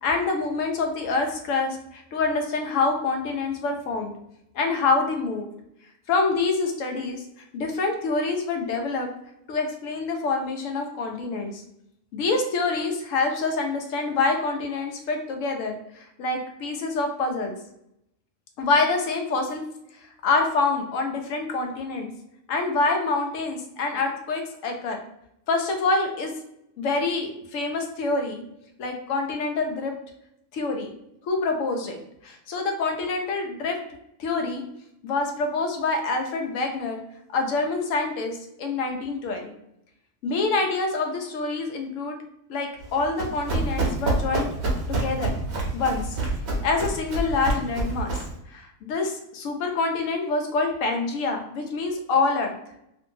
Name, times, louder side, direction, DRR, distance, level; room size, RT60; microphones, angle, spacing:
voice 1, 0.0-4.1 4.5-5.5 6.1-9.1 9.5-11.6 12.1-17.6 18.6-19.6 20.2-22.1 22.5-25.0 25.5-26.3 26.8-28.4 28.8-29.9 30.5-31.0 31.2-33.8 34.2-34.6 35.0-37.0 37.3-39.5 40.2-42.2 42.5-44.5 44.9-45.4 45.7-46.2 46.6-48.2 48.5-52.5, left 3 dB, 70° left, 3 dB, 0.9 m, -26 dB
Run, 42.8-48.4, right 2 dB, 55° right, 0.9 m, -27 dB
2.7 x 2.6 x 2.7 m, 0.79 s
omnidirectional pair, 1.5 m